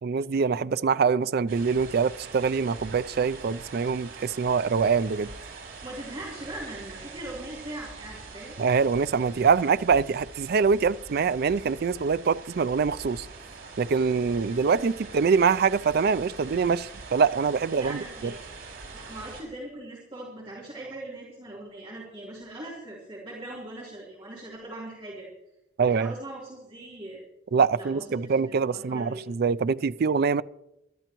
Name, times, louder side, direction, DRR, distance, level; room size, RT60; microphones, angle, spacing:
voice 1, 0.0-5.3 8.6-13.3 13.8-18.3 25.8-26.1 27.5-30.4, right 5 dB, 50° right, 0.4 m, -24 dB
sound 1, 1.5-19.4, right 4 dB, 75° right, 5.1 m, -44 dB
voice 2, 5.8-8.6 17.8-18.4 18.9-25.3 25.8-27.2 27.7-29.2, right 1 dB, 25° right, 3.5 m, -40 dB
21.0 x 13.0 x 3.0 m
head